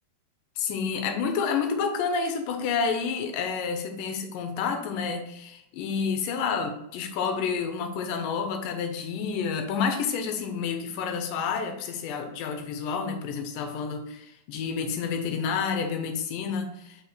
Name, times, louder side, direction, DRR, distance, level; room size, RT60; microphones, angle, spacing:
voice 1, 0.6-17.0, left 6 dB, 75° left, 5 dB, 2.2 m, -29 dB
5.8 x 5.2 x 3.2 m, 0.84 s
omnidirectional pair, 4.3 m